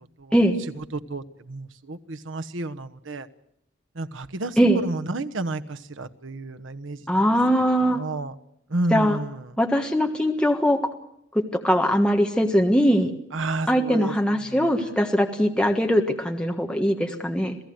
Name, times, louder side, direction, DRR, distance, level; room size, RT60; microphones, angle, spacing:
voice 1, 0.8-3.3 3.9-7.2 7.9-8.3 8.7-9.5 13.3-14.9, right 2 dB, 80° right, 9 dB, 1.2 m, -31 dB
voice 2, 7.1-8.0 8.9-9.2 9.6-10.8 11.3-13.1 13.7-17.6, equal, 5° left, 3 dB, 1.5 m, -21 dB
27.5 x 17.0 x 7.9 m, 0.75 s
head